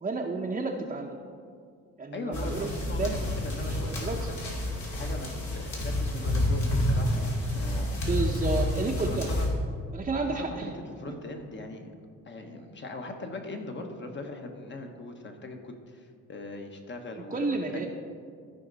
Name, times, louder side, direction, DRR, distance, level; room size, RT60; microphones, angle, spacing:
voice 1, 0.0-1.2 2.0-3.2 3.6-4.3 8.1-9.3 9.9-10.7 17.3-17.9, right 3 dB, 25° right, 0 dB, 0.7 m, -31 dB
voice 2, 2.1-4.4 4.9-7.9 9.0-9.5 10.5-11.9 12.2-17.9, left 2 dB, 40° left, 4 dB, 1.2 m, -40 dB
sound 1, 2.3-9.5, left 1 dB, 70° left, 2.5 m, -29 dB
14.0 x 5.2 x 4.0 m, 2.2 s
cardioid pair, 90°, 30 cm